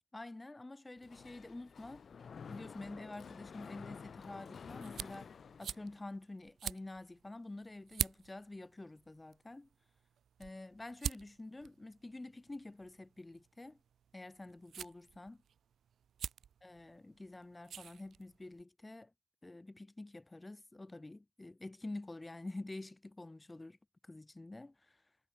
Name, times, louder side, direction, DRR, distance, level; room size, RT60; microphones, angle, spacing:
voice 1, 0.1-2.0 2.5-5.3 5.6-9.7 10.4-13.8 14.1-15.4 16.6-19.1 19.4-23.8 24.0-25.0, left 2 dB, 15° left, 1.0 m, -48 dB
Mechanisms, 1.0-6.2, left 6 dB, 45° left, 0.7 m, -51 dB
sound 1, 3.9-18.6, right 8 dB, 60° right, 2.0 m, -47 dB
cardioid pair, 90°, 0 cm